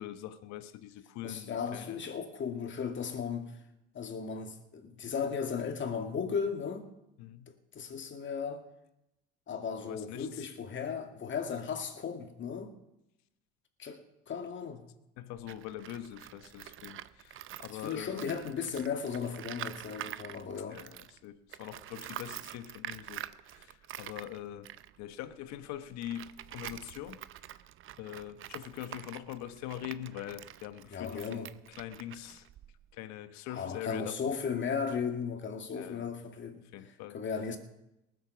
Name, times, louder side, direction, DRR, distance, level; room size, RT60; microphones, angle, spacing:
voice 1, 0.0-2.0 7.2-7.5 9.8-10.5 15.2-18.3 20.7-24.7 25.0-27.2 28.0-31.5 31.8-32.5 32.9-34.3 35.7-36.1 36.7-37.2, left 12 dB, 60° left, 1.2 m, -43 dB
voice 2, 1.2-3.5 3.9-6.9 7.7-8.6 9.5-12.7 13.8-14.0 14.3-14.9 17.8-20.8 30.9-31.5 33.5-36.6 37.1-37.6, left 6 dB, 40° left, 2.3 m, -36 dB
Tools, 15.4-21.2 21.5-33.0, right 12 dB, 40° right, 0.7 m, -46 dB
19.0 x 8.0 x 6.1 m
hypercardioid pair, 80°, 30 cm